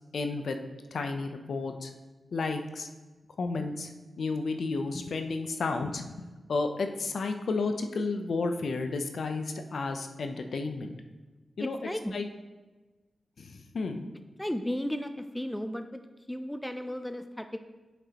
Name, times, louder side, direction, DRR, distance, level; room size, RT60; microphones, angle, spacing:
voice 1, 0.1-0.6 0.9-1.9 2.3-2.9 3.4-3.9 4.2-10.9 11.6-12.3 13.4-14.1, left 3 dB, 65° left, 6 dB, 0.6 m, -32 dB
voice 2, 11.6-12.1 14.4-16.0 16.3-17.6, equal, 5° left, 7 dB, 0.3 m, -34 dB
8.0 x 6.0 x 2.9 m, 1.2 s
wide cardioid pair, 160°, 0 cm